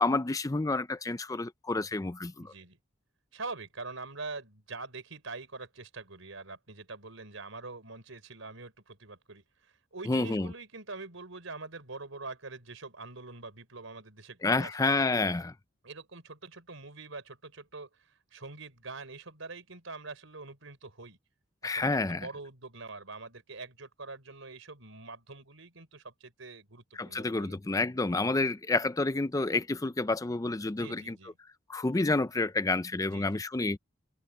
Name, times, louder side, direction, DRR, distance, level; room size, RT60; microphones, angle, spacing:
voice 1, 0.0-2.5 10.1-10.5 14.4-15.5 21.6-22.3 27.0-31.1 31.7-33.8, left 3 dB, 15° left, 0.5 m, -29 dB
voice 2, 2.4-2.8 3.3-15.0 15.8-21.2 21.6-27.7 28.4-28.5 30.8-31.4 33.0-33.4, right 3 dB, 80° right, 4.2 m, -44 dB
head